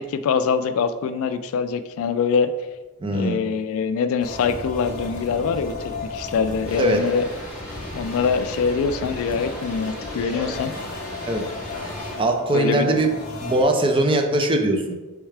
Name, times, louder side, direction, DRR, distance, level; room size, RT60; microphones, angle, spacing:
voice 1, 0.0-2.5 3.1-7.2 7.9-10.7 12.5-13.0, left 5 dB, 70° left, 12 dB, 0.3 m, -24 dB
voice 2, 3.0-3.4 6.8-7.0 11.3-11.5 12.2-13.1 13.4-14.9, right 1 dB, 25° right, 4 dB, 0.4 m, -21 dB
sound 1, 4.2-13.6, left 2 dB, 40° left, 0.7 m, -35 dB
sound 2, 6.7-12.2, equal, 5° right, 1.1 m, -37 dB
4.6 x 3.5 x 3.2 m, 1.2 s
head